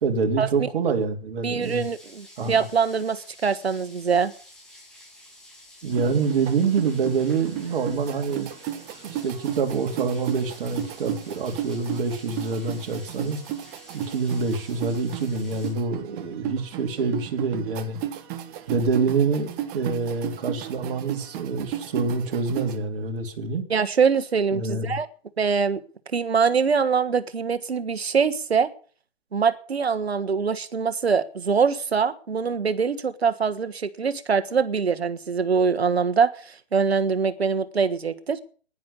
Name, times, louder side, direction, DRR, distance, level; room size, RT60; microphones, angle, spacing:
voice 1, 0.0-1.8 2.4-2.6 5.8-8.5 9.0-13.4 13.9-18.0 18.7-23.6 24.5-25.0, right 4 dB, 60° right, 3.2 m, -26 dB
voice 2, 1.4-4.3 23.7-25.1 25.4-25.8 26.1-28.7 29.3-38.4, right 6 dB, 90° right, 1.6 m, -23 dB
sound 1, 1.6-15.7, left 1 dB, ahead, 6.0 m, -50 dB
sound 2, 5.9-22.8, right 11 dB, 30° right, 1.5 m, -34 dB
11.0 x 10.5 x 8.4 m
hypercardioid pair, 130°, 30 cm